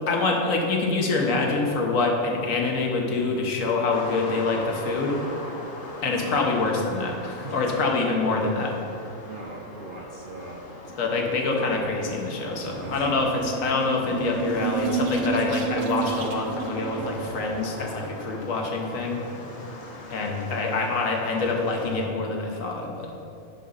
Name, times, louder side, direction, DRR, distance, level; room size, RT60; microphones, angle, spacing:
voice 1, 0.1-5.2 6.0-8.8 11.0-19.2 20.1-23.1, left 3 dB, 80° left, 1 dB, 1.4 m, -25 dB
sound 1, 3.9-22.1, left 1 dB, 60° left, 1.2 m, -40 dB
voice 2, 9.2-10.6 12.5-13.3 18.0-18.1 19.3-19.6, right 2 dB, 50° right, -2 dB, 0.7 m, -42 dB
sound 2, 12.4-17.8, right 7 dB, 75° right, 1.1 m, -31 dB
9.9 x 3.8 x 5.4 m, 2.8 s
omnidirectional pair, 1.4 m